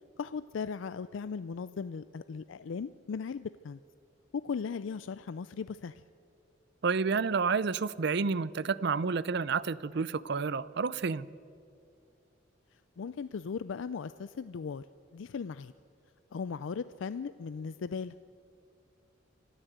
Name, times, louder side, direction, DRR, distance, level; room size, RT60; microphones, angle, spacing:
voice 1, 0.2-3.8 4.3-6.0 13.0-14.9 15.1-15.7 16.3-18.2, left 5 dB, 80° left, 14 dB, 0.4 m, -37 dB
voice 2, 6.8-11.3, right 5 dB, 60° right, 19 dB, 0.5 m, -30 dB
26.0 x 13.5 x 8.1 m, 2.4 s
head